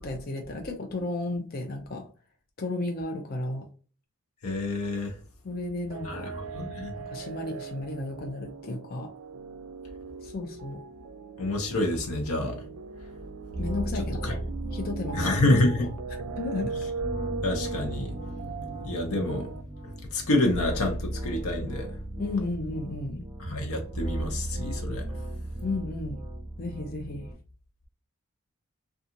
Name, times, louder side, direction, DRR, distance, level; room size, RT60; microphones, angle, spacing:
voice 1, 0.0-2.1 2.6-3.7 5.4-6.3 6.9-9.1 10.2-10.8 13.6-14.4 14.7-15.9 16.4-16.7 22.2-23.3 25.6-26.2 26.6-27.3, left 2 dB, 40° left, 0.5 m, -33 dB
voice 2, 4.4-5.2 6.0-6.9 11.4-12.6 13.9-14.3 15.1-15.9 17.4-18.1 18.8-19.5 20.1-21.9 23.4-25.0, left 1 dB, 90° left, 0.7 m, -27 dB
sound 1, 5.9-19.6, right 5 dB, 85° right, 0.4 m, -39 dB
sound 2, 13.5-27.3, right 1 dB, 30° right, 0.8 m, -36 dB
2.7 x 2.3 x 2.5 m
head